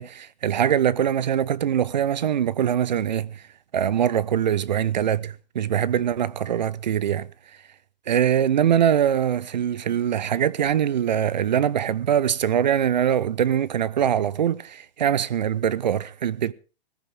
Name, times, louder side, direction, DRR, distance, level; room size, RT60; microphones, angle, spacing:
voice 1, 0.0-3.4 3.7-7.3 8.1-16.5, right 9 dB, 50° right, 0.7 m, -23 dB
19.5 x 14.0 x 3.6 m
hypercardioid pair, 180°, 29 cm